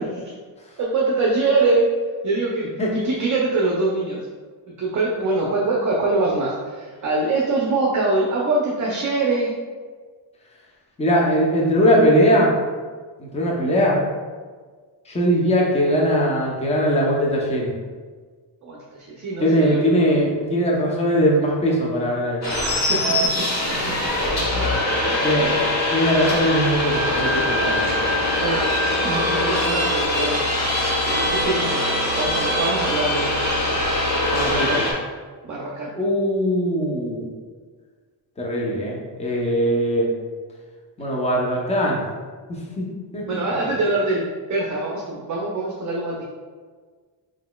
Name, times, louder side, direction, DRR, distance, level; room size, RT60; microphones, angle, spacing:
voice 1, 0.8-1.9 2.2-4.2 4.8-9.5 18.6-19.8 22.7-23.0 24.9-25.7 28.4-28.7 29.0-30.5 31.0-31.8 32.1-33.5 34.3-34.9 35.4-35.9 43.3-44.2 44.5-46.2, right 2 dB, 40° right, -3 dB, 0.6 m, -24 dB
voice 2, 11.0-12.5 13.2-14.0 15.1-17.7 19.4-22.4 25.2-27.9 34.5-34.7 36.0-37.3 38.4-40.1 41.0-42.0 42.5-42.8 43.1-43.2, equal, 15° left, -3 dB, 0.7 m, -20 dB
sound 1, 22.4-34.9, left 1 dB, 40° left, 1.0 m, -22 dB
4.5 x 4.0 x 2.2 m, 1.5 s
cardioid pair, 130°, 44 cm